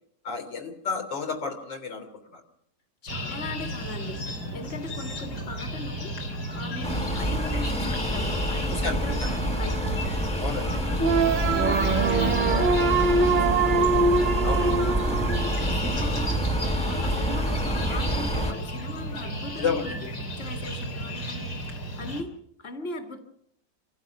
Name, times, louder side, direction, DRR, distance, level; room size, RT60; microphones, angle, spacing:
voice 1, 0.2-2.1 2.3-2.4 8.7-9.0 10.4-10.7 14.4-14.7 19.6-19.9, left 5 dB, 90° left, 4 dB, 4.1 m, -31 dB
voice 2, 3.0-4.3 4.5-14.0 14.6-22.3 22.6-23.2, left 2 dB, 35° left, 5 dB, 2.3 m, -39 dB
sound 1, 3.1-22.2, equal, 65° left, 3.7 m, -34 dB
sound 2, 6.8-18.5, right 1 dB, 5° left, 1.2 m, -27 dB
sound 3, 11.0-16.0, right 4 dB, 35° right, 0.8 m, -23 dB
27.5 x 16.0 x 6.0 m, 0.69 s
omnidirectional pair, 1.9 m